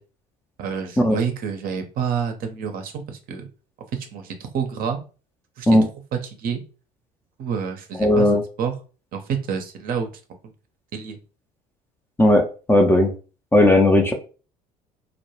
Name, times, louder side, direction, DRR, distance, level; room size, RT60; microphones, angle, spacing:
voice 1, 0.6-3.5 3.9-5.0 5.6-5.7 6.1-6.6 7.4-8.3 8.6-8.7 9.1-10.1 10.4-10.5 10.9-11.2, right 7 dB, 45° right, 5 dB, 0.6 m, -28 dB
voice 2, 8.0-8.4 12.2-13.1 13.5-14.1, left 1 dB, 10° left, 3 dB, 0.5 m, -16 dB
2.2 x 2.0 x 3.0 m, 0.35 s
figure-of-eight pair, 60°, 20 cm